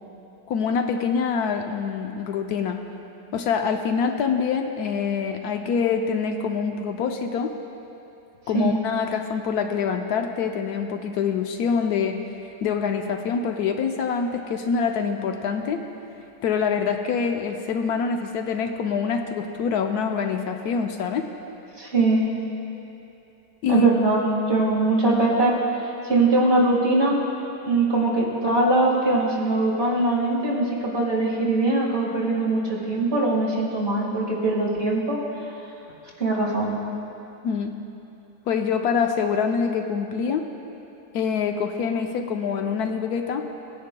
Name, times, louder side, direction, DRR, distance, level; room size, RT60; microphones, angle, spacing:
voice 1, 0.5-2.8 3.3-7.5 8.5-12.2 12.6-15.8 16.4-21.2 23.6-23.9 37.4-37.7 38.5-40.5 41.1-43.5, left 6 dB, 75° left, 5 dB, 1.1 m, -25 dB
voice 2, 21.8-22.2 23.7-25.6 26.0-27.2 27.6-35.2 36.2-36.7, right 2 dB, 40° right, -4 dB, 1.9 m, -22 dB
18.0 x 10.0 x 2.2 m, 2.8 s
omnidirectional pair, 1.7 m